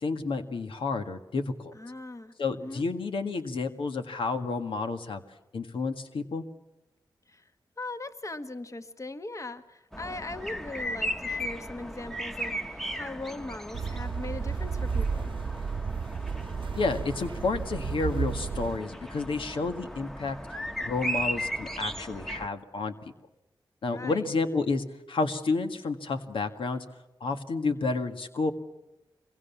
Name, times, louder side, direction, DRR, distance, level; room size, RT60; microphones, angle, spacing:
voice 1, 0.0-1.7 2.4-5.2 5.5-6.4 16.8-20.4 20.8-22.9 23.8-26.9 27.2-28.5, left 3 dB, 85° left, 7 dB, 1.8 m, -30 dB
voice 2, 1.7-2.3 2.6-2.8 7.3-7.4 7.8-15.3 23.8-24.2, left 2 dB, 40° left, 10 dB, 1.6 m, -39 dB
sound 1, 9.9-22.5, equal, 5° left, 1.2 m, -36 dB
sound 2, 13.7-18.8, right 5 dB, 75° right, 1.0 m, -32 dB
25.5 x 23.0 x 7.3 m, 1.0 s
cardioid pair, 60°, 9 cm